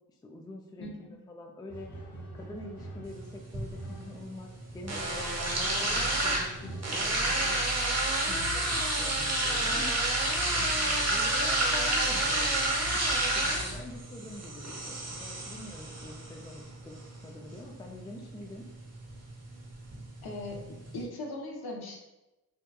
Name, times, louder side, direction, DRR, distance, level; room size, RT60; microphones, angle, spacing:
voice 1, 0.2-1.9 2.3-7.6 8.3-9.9 10.5-12.6 13.1-18.7, left 2 dB, 10° left, 1 dB, 0.3 m, -45 dB
voice 2, 0.8-1.2 20.2-22.1, left 2 dB, 60° left, 1 dB, 0.7 m, -39 dB
sound 1, 1.7-7.7 8.9-9.0 9.8-10.5, right 2 dB, 40° left, 1.0 m, -46 dB
sound 2, 3.0-21.0, right 1 dB, 40° right, 0.8 m, -31 dB
2.9 x 2.2 x 2.2 m, 1.0 s
supercardioid pair, 45°, 42 cm